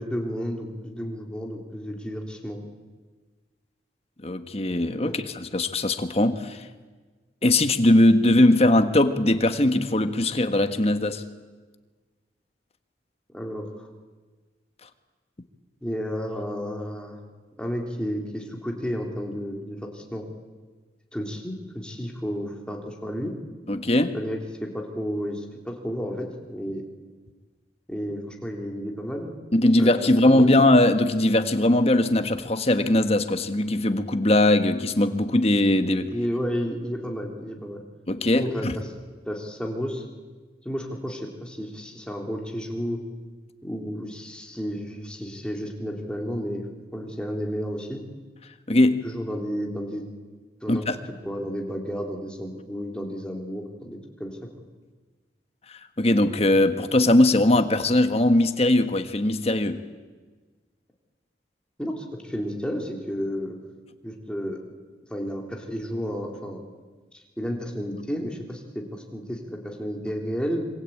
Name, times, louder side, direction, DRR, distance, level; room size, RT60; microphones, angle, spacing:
voice 1, 0.0-2.6 5.0-5.2 13.3-13.9 15.8-17.2 17.6-20.2 21.1-23.3 24.1-26.8 27.9-29.3 29.8-29.9 30.2-30.5 36.1-37.8 38.3-38.9 39.2-40.0 40.6-43.0 43.6-46.6 46.9-48.0 49.0-50.1 50.6-54.4 61.8-63.6 64.0-64.6 65.1-66.6 67.1-70.7, equal, 5° left, 1 dB, 3.4 m, -32 dB
voice 2, 4.2-6.6 7.4-11.2 23.7-24.1 29.5-36.1 38.1-38.8 48.7-49.0 50.7-51.0 56.0-59.8, left 1 dB, 35° left, 8 dB, 1.5 m, -20 dB
26.0 x 25.0 x 8.7 m, 1.4 s
head